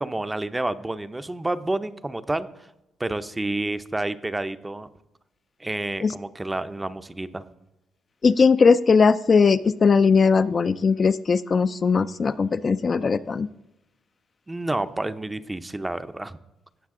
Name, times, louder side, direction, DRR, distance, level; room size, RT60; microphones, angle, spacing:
voice 1, 0.0-2.5 3.0-4.9 5.6-7.4 14.5-16.4, right 2 dB, 15° right, 12 dB, 0.5 m, -29 dB
voice 2, 8.2-13.5, left 5 dB, 40° left, 11 dB, 0.3 m, -19 dB
17.0 x 5.7 x 3.7 m, 0.90 s
cardioid pair, 90°, 0 cm